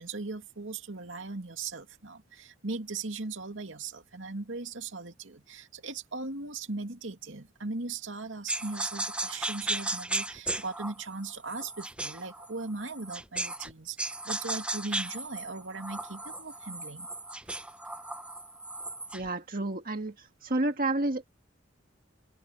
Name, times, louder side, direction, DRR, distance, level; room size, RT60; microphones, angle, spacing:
voice 1, 0.0-17.1, right 3 dB, 75° right, 2.4 m, -38 dB
sound 1, 8.5-13.7 14.0-19.3, right 2 dB, 5° right, 0.7 m, -36 dB
voice 2, 19.1-21.3, right 2 dB, 45° right, 1.7 m, -30 dB
open air
head